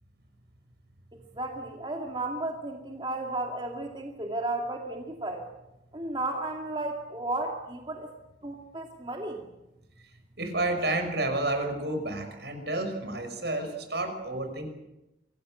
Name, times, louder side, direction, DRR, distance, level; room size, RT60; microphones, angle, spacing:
voice 1, 1.1-5.5 5.9-8.1 8.4-9.5, right 2 dB, 25° right, 2 dB, 2.3 m, -34 dB
voice 2, 10.4-14.7, right 2 dB, 70° right, 6 dB, 5.9 m, -30 dB
26.0 x 19.0 x 7.9 m, 0.94 s
head